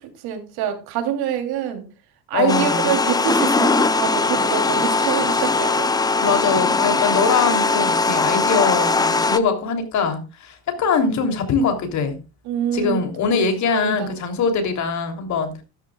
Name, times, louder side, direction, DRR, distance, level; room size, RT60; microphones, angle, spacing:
voice 1, 0.2-1.8 2.3-6.2 12.5-13.0 13.7-14.1, right 9 dB, 60° right, 6 dB, 3.2 m, -25 dB
voice 2, 2.3-2.9 6.2-12.2 12.7-15.5, left 5 dB, 40° left, 6 dB, 3.2 m, -22 dB
sound 1, 2.5-9.4, left 3 dB, 10° left, 0.5 m, -20 dB
14.0 x 13.0 x 2.3 m, 0.29 s
cardioid pair, 145°, 42 cm